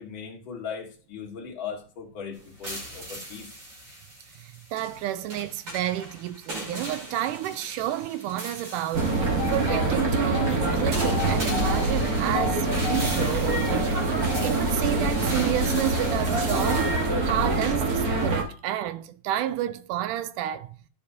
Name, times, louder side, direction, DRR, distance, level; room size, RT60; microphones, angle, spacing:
voice 1, 0.0-3.5, left 6 dB, 45° left, 1.9 m, -38 dB
sound 1, 2.3-17.1, equal, 40° right, 3.0 m, -38 dB
voice 2, 4.4-17.0 17.2-20.8, right 13 dB, 80° right, 2.1 m, -30 dB
sound 2, 8.9-18.4, right 2 dB, 65° right, 0.9 m, -25 dB
sound 3, 9.4-10.0 10.3-14.6 15.0-15.3 15.7-16.3, left 11 dB, 90° left, 2.4 m, -36 dB
12.5 x 5.5 x 2.7 m
omnidirectional pair, 3.7 m